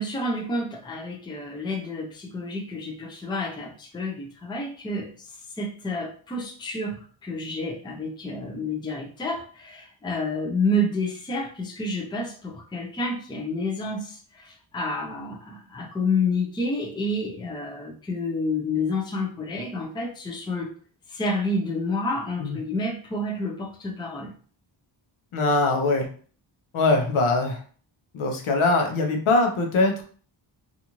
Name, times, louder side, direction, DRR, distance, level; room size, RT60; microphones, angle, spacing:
voice 1, 0.0-5.3 5.6-20.7 21.1-24.3, left 2 dB, 10° left, 2 dB, 0.4 m, -29 dB
voice 2, 25.3-26.1 26.7-27.6 28.1-30.0, left 2 dB, 85° left, 3 dB, 0.8 m, -22 dB
2.5 x 2.5 x 2.9 m, 0.43 s
wide cardioid pair, 140°, 48 cm